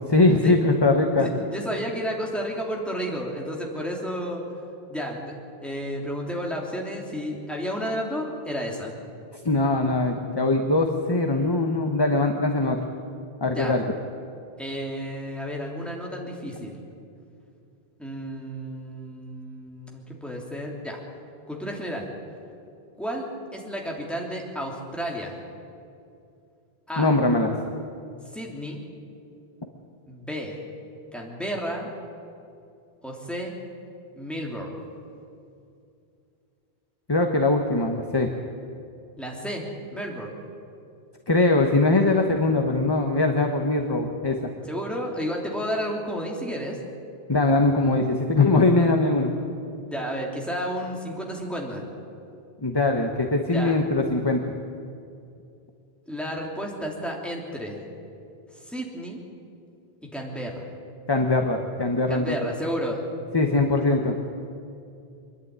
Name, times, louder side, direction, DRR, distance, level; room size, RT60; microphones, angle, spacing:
voice 1, 0.0-1.3 9.4-12.8 13.4-13.8 27.0-27.7 37.1-38.3 41.3-44.5 47.3-49.3 52.6-54.5 61.1-62.5 63.3-64.2, left 2 dB, 25° left, 3 dB, 1.1 m, -21 dB
voice 2, 1.2-4.4 4.9-5.3 5.6-9.0 13.5-13.7 14.6-16.8 18.0-21.0 21.5-22.1 23.0-25.4 26.9-27.1 28.3-28.8 30.1-30.5 31.1-31.9 33.0-33.5 34.1-34.8 39.2-40.4 44.7-46.8 49.9-51.8 53.5-53.8 56.1-57.8 58.6-59.2 60.0-60.6 62.1-63.0, equal, ahead, -2 dB, 3.1 m, -32 dB
25.0 x 11.0 x 9.5 m, 2.5 s
omnidirectional pair, 1.1 m